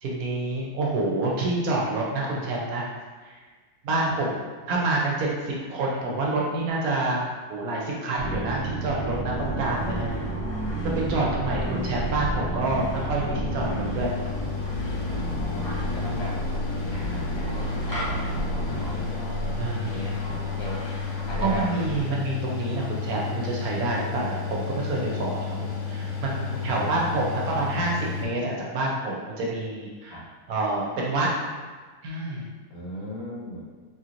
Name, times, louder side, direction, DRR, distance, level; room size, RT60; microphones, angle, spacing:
voice 1, 0.0-2.9 3.8-4.3 4.7-10.1 10.8-14.1 19.6-20.1 21.4-30.2 30.5-31.3 32.0-32.5, right 2 dB, 70° right, -3 dB, 1.1 m, -27 dB
sound 1, 8.2-19.0, right 2 dB, 50° right, 0.5 m, -31 dB
sound 2, 9.4-22.0, equal, 20° left, 0.6 m, -37 dB
Mechanical fan, 12.9-28.3, left 5 dB, 80° left, 1.1 m, -32 dB
voice 2, 15.9-16.4 16.9-20.9 21.3-21.7 26.5-27.2 30.1-30.3 32.7-33.7, left 1 dB, 65° left, -4 dB, 0.9 m, -37 dB
3.0 x 2.7 x 2.5 m, 1.4 s
omnidirectional pair, 1.6 m